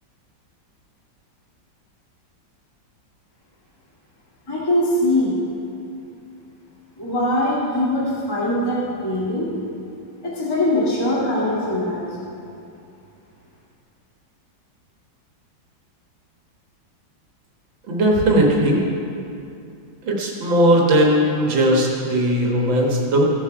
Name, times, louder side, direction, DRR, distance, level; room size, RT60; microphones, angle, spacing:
voice 1, 4.5-5.4 7.0-9.5 10.2-12.1, left 1 dB, 10° left, -7 dB, 1.7 m, -22 dB
voice 2, 17.9-18.8 20.0-23.3, right 1 dB, 80° right, -1 dB, 2.2 m, -18 dB
15.5 x 7.4 x 4.7 m, 2.6 s
omnidirectional pair, 2.1 m